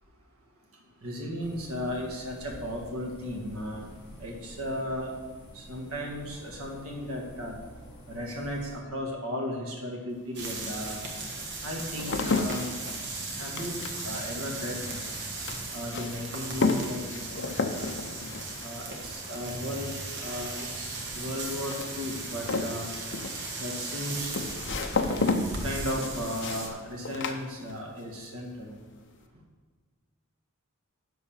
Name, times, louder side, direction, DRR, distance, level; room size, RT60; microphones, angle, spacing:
voice 1, 1.0-3.8 4.2-5.1 5.6-7.5 8.1-11.0 11.6-12.8 13.3-15.0 15.7-17.9 18.6-19.9 20.2-22.9 23.6-24.3 25.6-28.8, equal, 75° right, -1 dB, 2.0 m, -35 dB
sound 1, 1.4-8.8, equal, 25° left, 2.7 m, -49 dB
sound 2, 10.1-10.2 10.9-28.1 28.4-29.0, left 3 dB, 55° left, 0.8 m, -33 dB
sound 3, 10.3-26.7, right 2 dB, 55° right, 1.6 m, -37 dB
11.0 x 4.0 x 7.2 m, 1.4 s
head